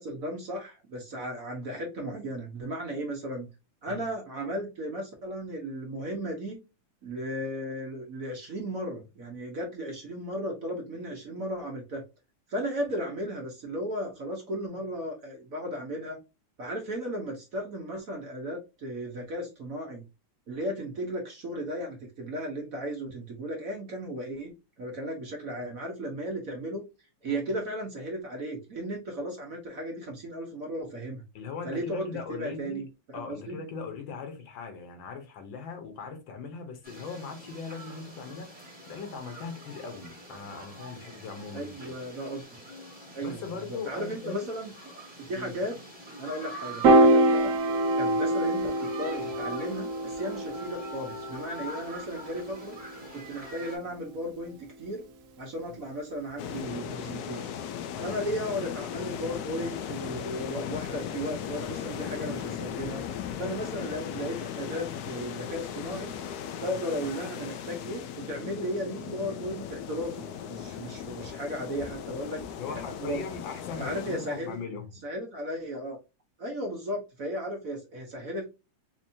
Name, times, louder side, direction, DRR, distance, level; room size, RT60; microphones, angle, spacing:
voice 1, 0.0-3.5 3.8-6.6 7.0-12.0 12.5-16.2 16.6-20.0 20.5-24.5 24.8-26.8 27.2-31.2 31.6-33.6 41.5-42.4 43.1-43.5 43.9-44.7 45.3-45.7 46.2-47.5 48.0-52.8 53.1-55.0 55.4-57.5 58.0-63.0 63.4-66.1 66.6-72.4 72.7-73.2 73.8-74.6 75.0-76.0 76.4-78.4, equal, 50° right, 1.2 m, -35 dB
voice 2, 31.3-32.8 33.1-41.9 43.2-44.5 45.3-45.6 55.7-55.8 57.9-58.1 72.5-74.9, left 5 dB, 70° left, 1.5 m, -39 dB
sound 1, 36.8-53.8, right 1 dB, 5° right, 1.2 m, -45 dB
Piano, 46.8-53.2, right 1 dB, 75° right, 0.7 m, -25 dB
sound 2, 56.4-74.6, left 9 dB, 85° left, 0.8 m, -37 dB
4.4 x 2.7 x 2.7 m
omnidirectional pair, 2.3 m